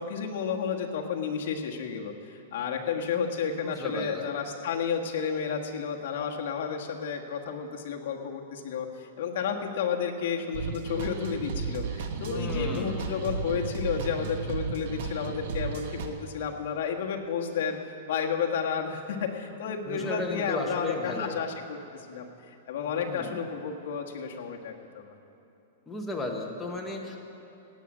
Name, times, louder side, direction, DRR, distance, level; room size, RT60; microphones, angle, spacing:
voice 1, 0.0-17.8 18.1-25.0, left 6 dB, 55° left, 1 dB, 1.4 m, -32 dB
voice 2, 3.6-4.3 12.3-13.1 19.9-21.4 22.9-23.4 25.9-27.2, left 2 dB, 5° left, -1 dB, 1.2 m, -35 dB
sound 1, 10.5-16.1, right 4 dB, 55° right, 1.1 m, -34 dB
17.0 x 8.9 x 6.2 m, 2.9 s
supercardioid pair, 170°, 0 cm